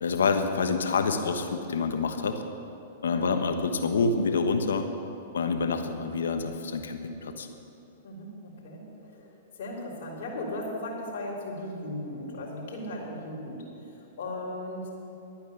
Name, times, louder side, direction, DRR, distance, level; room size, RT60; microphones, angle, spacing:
voice 1, 0.0-2.4 3.0-4.9 5.3-7.5, left 4 dB, 85° left, 6 dB, 1.2 m, -27 dB
voice 2, 8.0-14.9, left 1 dB, 65° left, -3 dB, 3.6 m, -37 dB
12.0 x 9.1 x 7.0 m, 2.8 s
hypercardioid pair, 125°, 0 cm